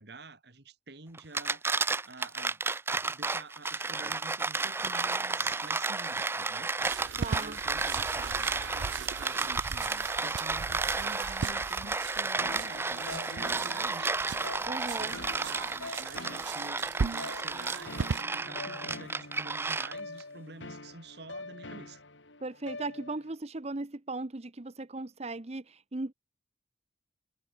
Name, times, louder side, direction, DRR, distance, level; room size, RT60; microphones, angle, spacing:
voice 1, 0.0-2.6 3.1-14.3 14.6-22.0, right 3 dB, 60° right, 2.4 m, -48 dB
sound 1, 1.2-20.2, right 3 dB, 15° right, 0.4 m, -32 dB
sound 2, 6.8-18.2, right 5 dB, 85° right, 0.5 m, -38 dB
voice 2, 7.2-7.6 14.7-15.2 22.4-26.1, right 2 dB, 35° right, 0.9 m, -37 dB
sound 3, 12.4-23.3, left 2 dB, 85° left, 5.5 m, -45 dB
head